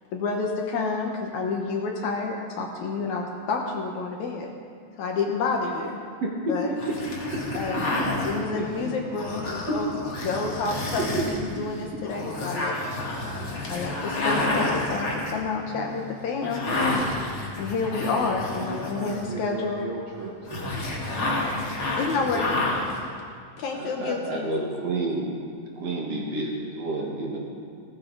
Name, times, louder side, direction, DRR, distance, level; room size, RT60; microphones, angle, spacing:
voice 1, 0.1-4.5 5.0-6.0 6.5-6.7 7.5-9.9 10.2-12.8 13.7-16.6 17.6-19.9 22.0-22.7 23.6-24.5, left 4 dB, 65° left, 1 dB, 2.2 m, -29 dB
voice 2, 6.2-6.6 6.9-7.0 7.3-7.4 7.7-7.8 9.7-9.8 22.3-22.6 23.7-25.3 25.8-27.4, right 2 dB, 50° right, -2 dB, 2.5 m, -29 dB
sound 1, 6.8-19.4 20.4-23.0, left 2 dB, 40° left, 2.4 m, -30 dB
voice 3, 8.5-9.4 18.5-20.7 21.0-22.0, right 4 dB, 90° right, -3 dB, 1.1 m, -38 dB
16.5 x 14.5 x 4.0 m, 2.2 s
omnidirectional pair, 4.0 m